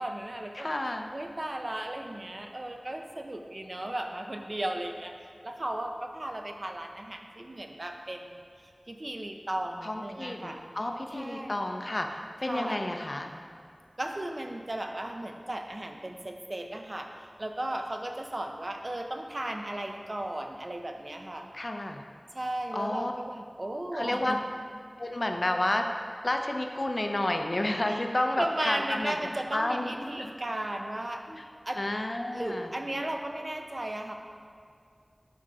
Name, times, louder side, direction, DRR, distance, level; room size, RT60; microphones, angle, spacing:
voice 1, 0.0-8.4 8.9-10.6 11.1-11.6 12.4-12.8 14.0-17.1 17.4-21.5 22.3-24.4 27.8-28.0 28.4-31.2 31.6-31.8 32.3-34.1, right 1 dB, 50° right, 3 dB, 0.7 m, -35 dB
voice 2, 0.6-1.1 9.8-13.3 21.5-22.0 22.7-23.1 23.9-24.4 25.0-25.9 26.2-29.2 29.5-30.3 31.3-31.4 31.8-32.7, left 1 dB, 55° left, 4 dB, 0.6 m, -31 dB
11.0 x 3.8 x 4.7 m, 2.3 s
wide cardioid pair, 55°, 0 cm